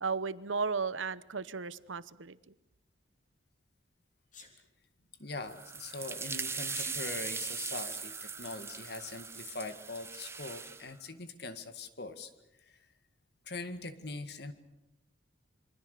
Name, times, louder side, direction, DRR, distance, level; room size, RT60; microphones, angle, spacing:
voice 1, 0.0-2.5, right 5 dB, 85° right, 16 dB, 0.9 m, -35 dB
Sneeze, 4.3-4.5 6.6-7.0, left 5 dB, 40° left, 3.4 m, -46 dB
voice 2, 5.2-12.3 12.7-12.8 13.5-14.5, left 3 dB, 55° left, 9 dB, 1.9 m, -42 dB
sound 1, 5.4-10.9, right 5 dB, 15° right, 0.9 m, -40 dB
27.0 x 24.0 x 6.8 m, 0.90 s
head